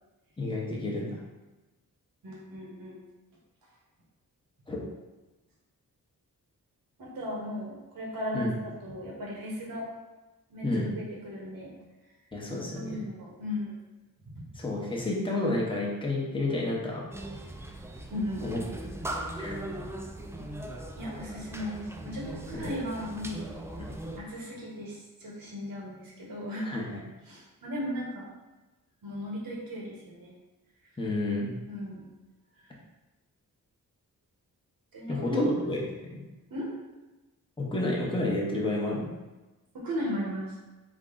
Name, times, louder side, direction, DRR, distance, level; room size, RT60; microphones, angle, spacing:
voice 1, 0.4-1.2 4.7-4.8 8.3-8.5 10.6-10.9 12.3-13.0 14.5-17.1 18.4-18.6 19.4-19.6 22.5-22.7 23.8-23.9 26.6-27.0 31.0-31.6 35.1-36.2 37.6-39.1, left 2 dB, 15° left, -4 dB, 0.9 m, -30 dB
voice 2, 2.2-3.0 7.0-9.9 10.5-11.7 12.7-13.7 14.3-14.6 18.1-18.8 20.9-23.5 23.8-26.7 27.3-28.3 29.0-30.3 31.7-32.0 34.9-35.4 36.5-36.7 39.7-40.6, left 1 dB, 75° right, -3 dB, 1.1 m, -36 dB
sound 1, 17.1-24.2, right 1 dB, 10° right, 0.3 m, -39 dB
3.6 x 2.3 x 3.8 m, 1.1 s
cardioid pair, 70°, 36 cm